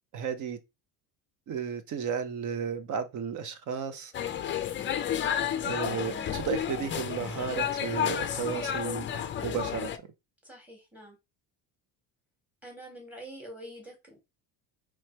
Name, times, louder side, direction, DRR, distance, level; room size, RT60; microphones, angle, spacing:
voice 1, 0.1-0.6 1.5-4.1 5.6-9.1 9.4-9.9, right 7 dB, 45° right, 0.8 m, -33 dB
sound 1, 4.1-10.0, left 9 dB, 30° left, 0.5 m, -31 dB
voice 2, 10.4-11.2 12.6-14.2, right 1 dB, 5° right, 1.7 m, -46 dB
3.2 x 3.2 x 4.4 m
cardioid pair, 140°, 42 cm